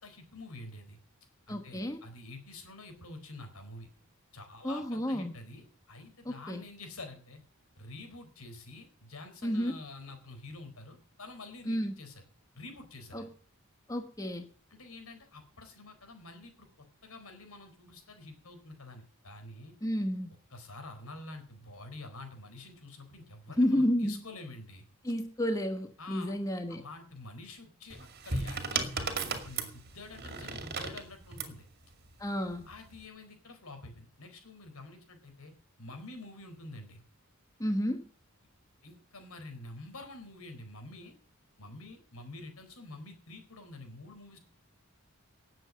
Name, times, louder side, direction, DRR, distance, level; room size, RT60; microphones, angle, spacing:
voice 1, 0.0-1.0 1.5-3.9 4.3-7.4 7.8-12.2 12.5-13.3 14.7-19.8 20.5-24.8 26.0-26.3 26.7-28.0 28.2-31.7 32.7-35.5 35.8-37.0 38.8-41.1 41.6-44.4, left 2 dB, 85° left, 6 dB, 4.3 m, -48 dB
voice 2, 1.5-2.0 4.6-5.3 6.2-6.6 9.4-9.8 11.7-11.9 13.1-13.3 13.9-14.4 19.8-20.3 23.6-24.2 25.0-26.8 32.2-32.6 37.6-38.1, equal, 15° left, 6 dB, 1.2 m, -31 dB
sound 1, 27.9-31.6 32.6-33.0, right 4 dB, 45° right, 2.2 m, -35 dB
19.0 x 7.8 x 6.3 m, 0.42 s
head